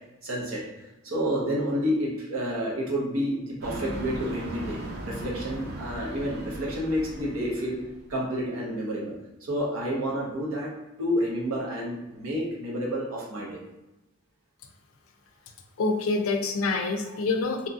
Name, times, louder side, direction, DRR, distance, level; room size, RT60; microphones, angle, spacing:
voice 1, 0.2-7.8 8.1-9.2 9.4-10.7 11.0-13.6, equal, 90° right, -3 dB, 0.9 m, -29 dB
sound 1, 3.6-8.1, right 1 dB, 50° right, 0.6 m, -38 dB
voice 2, 15.8-17.7, left 3 dB, 90° left, 4 dB, 0.4 m, -26 dB
2.9 x 2.5 x 2.4 m, 1.0 s
head